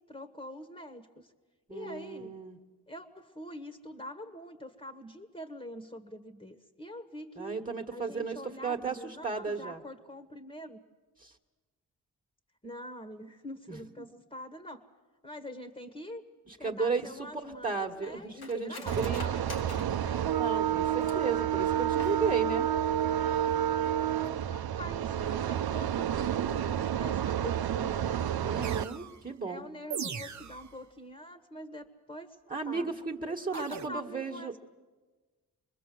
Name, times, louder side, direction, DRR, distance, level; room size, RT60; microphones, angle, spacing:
voice 1, 0.0-1.3 1.7-2.3 2.9-7.6 7.9-10.8 12.6-14.9 15.2-16.2 16.6-20.2 23.1-23.2 24.5-28.3 29.4-32.4 32.7-32.9 33.5-34.6, equal, 15° left, 8 dB, 1.6 m, -45 dB
voice 2, 1.7-2.6 7.4-9.8 11.2-11.3 13.7-13.8 16.5-19.4 20.4-22.7 28.4-29.6 32.5-34.5, right 4 dB, 20° right, 3 dB, 1.7 m, -34 dB
Cutlery silverware, 16.9-21.4 21.9-22.6 22.9-23.0 23.3-23.7 24.0-24.2, left 3 dB, 65° left, 2.3 m, -48 dB
sound 1, 18.9-28.8, right 10 dB, 65° right, 0.7 m, -29 dB
sound 2, 28.6-29.2 29.9-30.8 33.5-33.9, right 7 dB, 45° right, 1.0 m, -39 dB
26.0 x 21.0 x 7.7 m, 1.3 s
cardioid pair, 65°, 40 cm